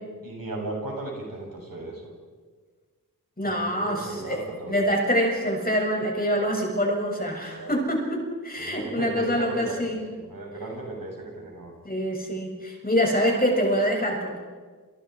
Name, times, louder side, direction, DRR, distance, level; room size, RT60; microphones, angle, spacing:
voice 1, 0.2-2.0 3.5-4.8 7.6-7.8 8.6-11.7, right 2 dB, 75° right, -1 dB, 7.7 m, -36 dB
voice 2, 3.4-10.1 11.8-14.4, equal, 25° left, 0 dB, 7.2 m, -25 dB
29.5 x 28.0 x 4.9 m, 1.5 s
wide cardioid pair, 65°, 34 cm